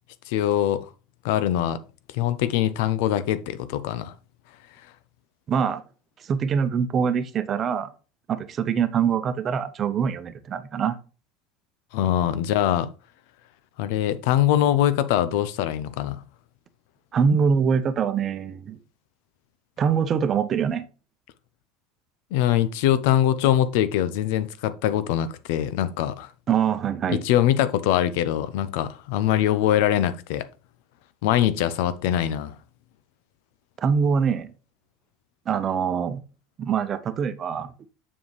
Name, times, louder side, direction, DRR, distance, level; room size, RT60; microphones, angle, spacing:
voice 1, 0.3-0.8 1.2-1.8 2.1-4.1 11.9-12.9 13.8-16.2 22.3-26.3 27.1-30.5 31.2-32.5, left 11 dB, 75° left, 0.6 m, -23 dB
voice 2, 5.5-5.8 6.3-7.9 8.3-11.0 17.1-18.8 19.8-20.8 26.5-27.2 33.8-34.5 35.5-36.2 36.6-37.7, right 6 dB, 40° right, 0.8 m, -24 dB
7.0 x 5.5 x 3.2 m
supercardioid pair, 100°, 0 cm